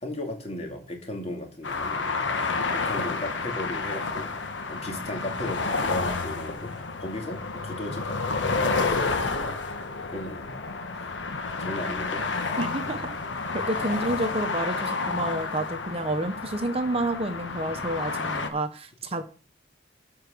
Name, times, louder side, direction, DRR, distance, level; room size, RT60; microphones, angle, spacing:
voice 1, 0.0-4.3 4.7-9.3 10.1-10.6 11.6-12.2, left 1 dB, 35° left, 2 dB, 2.7 m, -36 dB
sound 1, 1.6-18.5, left 4 dB, 90° left, 1.3 m, -30 dB
voice 2, 12.6-13.2 13.5-19.2, right 1 dB, 35° right, 8 dB, 0.9 m, -29 dB
12.0 x 4.8 x 6.6 m, 0.38 s
head